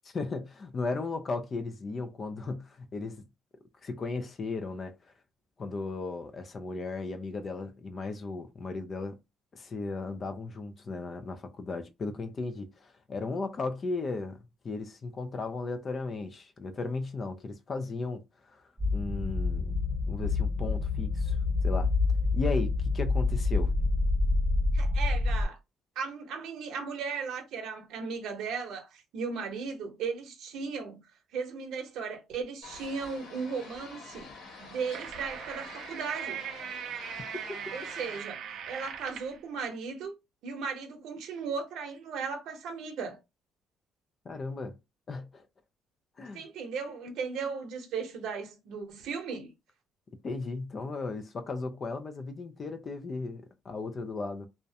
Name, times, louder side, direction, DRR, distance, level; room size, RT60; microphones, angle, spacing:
voice 1, 0.0-3.3 3.8-4.9 5.6-9.2 9.5-14.4 14.6-18.6 18.9-19.8 20.1-21.4 21.6-21.9 22.3-23.8 44.3-44.8 45.1-45.5 46.2-46.5 50.2-54.5, left 3 dB, 30° left, 0.3 m, -36 dB
sound 1, 18.8-25.4, left 3 dB, ahead, 1.0 m, -27 dB
voice 2, 24.7-25.6 26.0-31.0 31.3-34.3 34.6-36.4 37.7-38.4 38.7-40.1 40.4-43.2 46.3-49.5, right 5 dB, 70° right, 0.7 m, -36 dB
sound 2, 32.6-38.2, left 3 dB, 80° left, 1.1 m, -48 dB
sound 3, 34.5-39.4, right 8 dB, 55° right, 0.3 m, -40 dB
2.3 x 2.0 x 2.7 m
cardioid pair, 170°, 0 cm